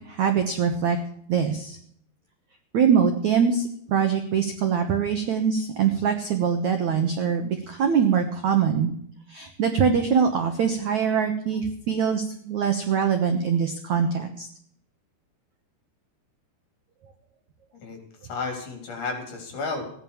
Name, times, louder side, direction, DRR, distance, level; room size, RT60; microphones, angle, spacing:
voice 1, 0.1-1.0 1.3-1.8 2.7-8.9 9.3-14.5, right 7 dB, 65° right, 6 dB, 1.9 m, -23 dB
voice 2, 17.7-19.9, left 4 dB, 45° left, 4 dB, 4.9 m, -33 dB
16.0 x 9.9 x 7.2 m, 0.64 s
omnidirectional pair, 5.1 m